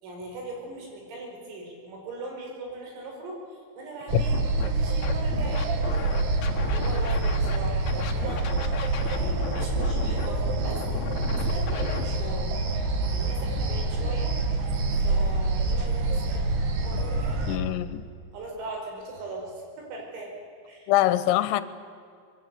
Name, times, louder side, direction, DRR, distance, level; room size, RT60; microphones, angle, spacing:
voice 1, 0.0-5.7 6.7-8.5 9.0-10.8 11.3-12.5 13.1-14.3 15.0-17.4 18.3-20.9, right 2 dB, 85° right, 7.9 m, -40 dB
sound 1, 4.1-17.6, right 2 dB, 60° right, 3.9 m, -26 dB
Scratching (performance technique), 4.3-4.7 5.0-7.6 7.9-12.0, left 6 dB, 55° left, 2.0 m, -36 dB
voice 2, 17.5-18.0 20.9-21.6, left 14 dB, 80° left, 3.4 m, -23 dB
24.5 x 22.0 x 8.3 m
omnidirectional pair, 5.9 m